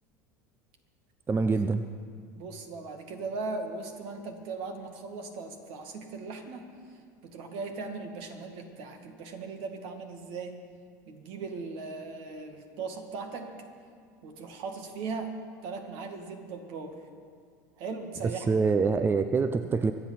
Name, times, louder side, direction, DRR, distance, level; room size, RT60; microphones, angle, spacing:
voice 1, 1.3-1.8 18.5-19.9, right 4 dB, 20° right, 10 dB, 0.6 m, -25 dB
voice 2, 2.3-6.7 7.2-10.6 11.1-13.5 14.2-17.0 17.8-18.5, right 4 dB, 60° right, 5 dB, 2.2 m, -38 dB
24.0 x 8.4 x 5.9 m, 2.3 s
hypercardioid pair, 90°, 10 cm